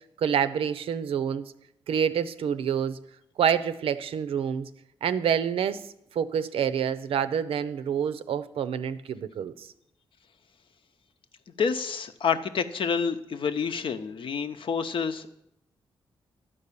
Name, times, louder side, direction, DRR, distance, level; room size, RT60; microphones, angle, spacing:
voice 1, 0.2-1.4 1.9-3.0 3.4-4.7 5.0-5.8 6.1-9.7, right 8 dB, 85° right, 13 dB, 0.6 m, -27 dB
voice 2, 11.6-15.3, left 6 dB, 65° left, 9 dB, 0.8 m, -28 dB
11.0 x 5.4 x 8.4 m, 0.81 s
cardioid pair, 80°, 9 cm